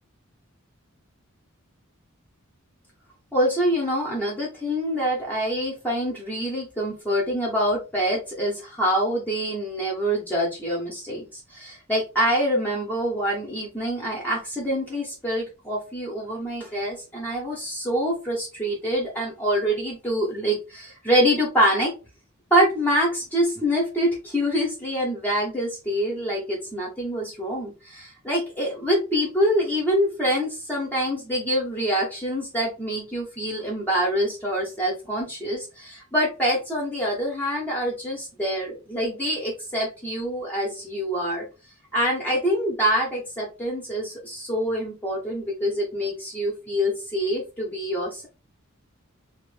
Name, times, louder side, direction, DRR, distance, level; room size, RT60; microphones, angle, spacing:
voice 1, 3.3-21.9 22.5-41.5 41.9-48.3, equal, 10° left, -3 dB, 0.7 m, -25 dB
2.4 x 2.0 x 3.2 m, 0.30 s
head